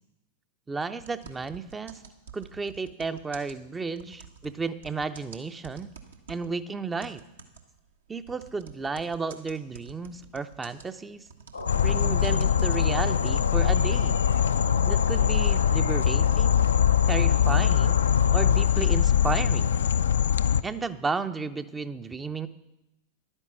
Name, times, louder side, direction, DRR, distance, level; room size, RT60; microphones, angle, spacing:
voice 1, 0.7-2.0 2.3-5.9 6.3-7.2 8.1-11.3 11.8-14.2 14.9-16.7 17.1-18.0 18.3-19.8 20.6-22.5, right 4 dB, 15° right, 12 dB, 0.6 m, -33 dB
sound 1, 1.0-6.6 7.0-13.7, right 5 dB, 70° right, 1.2 m, -48 dB
sound 2, 11.5-18.6, left 3 dB, 85° left, 1.0 m, -35 dB
sound 3, 11.7-20.6, left 9 dB, 65° left, 0.4 m, -22 dB
11.0 x 9.9 x 7.1 m, 0.94 s
figure-of-eight pair, 90°, 0 cm